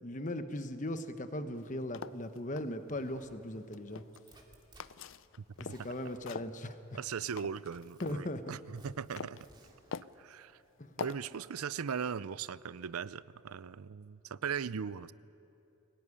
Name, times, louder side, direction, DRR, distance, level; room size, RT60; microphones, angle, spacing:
voice 1, 0.0-4.0 5.6-6.8 8.0-8.4 10.8-11.0, left 1 dB, 35° left, 1.1 m, -38 dB
sound 1, 1.6-2.7 3.5-4.4 4.8-5.9 6.3-8.2 8.7-9.5 9.9-10.2 11.0-11.4, left 6 dB, 60° left, 0.5 m, -44 dB
Zipper (clothing), 2.9-3.4 3.7-4.9 5.5-6.3 7.0-7.4 7.7-8.1 8.8-10.0, right 2 dB, 20° right, 2.4 m, -60 dB
voice 2, 6.9-9.5 10.2-10.6 11.0-15.1, right 7 dB, 85° right, 0.5 m, -39 dB
22.5 x 18.0 x 9.8 m
head